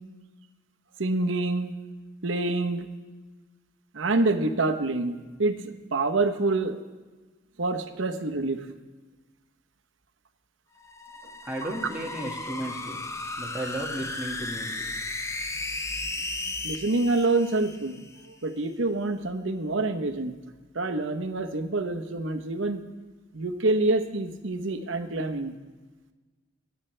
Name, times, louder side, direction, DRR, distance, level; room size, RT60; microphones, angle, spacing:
voice 1, 1.0-1.7 2.2-2.9 3.9-6.8 7.6-8.6 11.6-11.7 16.6-18.0 18.4-20.3 20.7-22.8 23.3-25.6, right 2 dB, 65° right, 7 dB, 0.9 m, -27 dB
sound 1, 10.8-18.3, left 2 dB, 15° left, 0.6 m, -35 dB
voice 2, 11.2-13.1 13.4-14.8, right 1 dB, 10° right, -2 dB, 1.8 m, -34 dB
26.0 x 9.0 x 3.3 m, 1.3 s
head